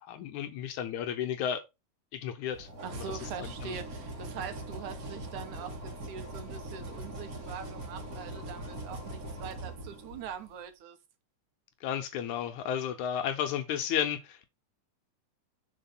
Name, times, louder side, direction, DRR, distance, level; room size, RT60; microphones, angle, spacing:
voice 1, 0.0-1.6 2.1-2.7 3.0-3.1 11.8-14.5, left 9 dB, 75° left, 1.9 m, -33 dB
sound 1, 2.5-10.5, right 1 dB, 35° right, 1.7 m, -41 dB
voice 2, 2.8-11.0, right 7 dB, 70° right, 2.2 m, -43 dB
6.1 x 4.5 x 5.4 m
omnidirectional pair, 3.8 m